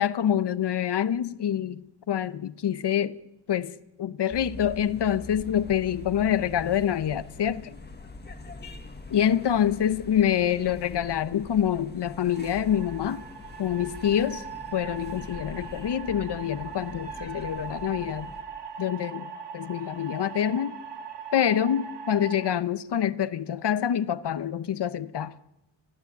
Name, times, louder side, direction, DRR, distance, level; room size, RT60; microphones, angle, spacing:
voice 1, 0.0-1.8 2.1-3.2 3.5-3.7 4.0-7.7 9.1-13.2 13.6-14.4 14.7-18.3 18.8-20.8 21.3-25.3, left 9 dB, 60° left, 1.0 m, -26 dB
sound 1, 4.3-18.4, left 2 dB, 20° left, 1.6 m, -44 dB
sound 2, 12.3-22.5, right 6 dB, 60° right, 2.3 m, -40 dB
28.0 x 14.5 x 9.4 m
wide cardioid pair, 165°, 47 cm